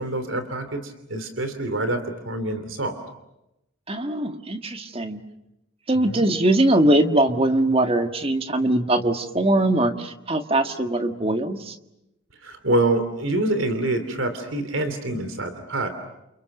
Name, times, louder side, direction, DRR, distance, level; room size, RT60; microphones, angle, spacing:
voice 1, 0.0-3.0 6.1-6.2 12.4-15.9, right 2 dB, 75° right, 8 dB, 2.9 m, -26 dB
voice 2, 3.9-5.2 5.9-11.8, right 1 dB, 30° right, 7 dB, 1.8 m, -21 dB
30.0 x 28.5 x 6.6 m, 0.87 s
head